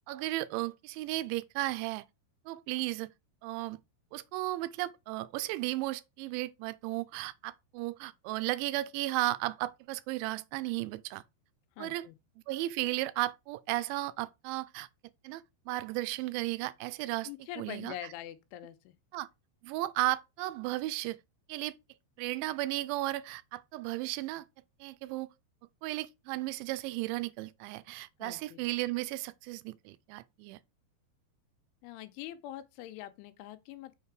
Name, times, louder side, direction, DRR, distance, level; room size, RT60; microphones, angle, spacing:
voice 1, 0.1-2.1 2.5-3.1 3.4-3.8 4.1-11.2 11.8-12.1 12.5-14.9 15.2-17.3 17.6-17.9 19.1-19.3 19.6-21.2 21.5-21.7 22.2-24.5 24.8-25.3 25.8-30.6, right 17 dB, 80° right, 2.9 m, -34 dB
voice 2, 11.8-12.1 17.2-18.9 28.2-28.6 31.8-33.9, left 13 dB, 85° left, 3.0 m, -44 dB
6.5 x 5.6 x 4.7 m
omnidirectional pair, 5.7 m